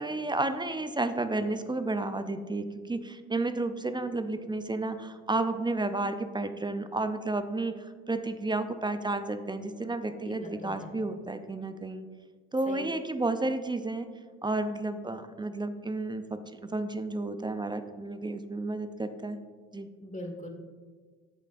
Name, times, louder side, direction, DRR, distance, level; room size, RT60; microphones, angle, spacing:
voice 1, 0.0-12.1 12.5-14.1 14.4-19.4 19.7-19.9, right 2 dB, 10° right, 10 dB, 0.5 m, -32 dB
voice 2, 10.2-10.8 12.7-12.8 20.0-20.5, left 1 dB, 20° left, 3 dB, 1.7 m, -40 dB
10.5 x 8.2 x 2.6 m, 1.5 s
hypercardioid pair, 65°, 38 cm